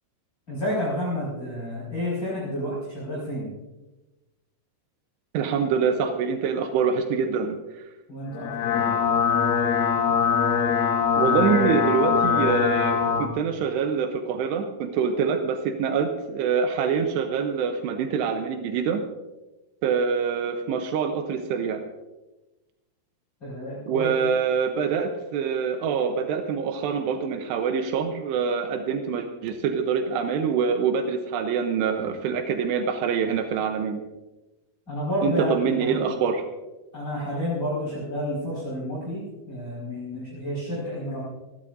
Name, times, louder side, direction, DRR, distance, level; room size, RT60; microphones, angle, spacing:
voice 1, 0.5-3.5 8.1-9.0 11.2-11.4 23.4-24.2 34.9-36.0 36.9-41.2, left 1 dB, 25° left, -8 dB, 5.5 m, -30 dB
voice 2, 5.3-7.6 11.2-19.0 19.8-21.8 23.9-34.0 35.2-36.4, right 6 dB, 85° right, 6 dB, 3.0 m, -25 dB
sound 1, 8.3-13.3, left 7 dB, 65° left, 2.5 m, -22 dB
28.0 x 12.0 x 2.6 m, 1.1 s
omnidirectional pair, 4.7 m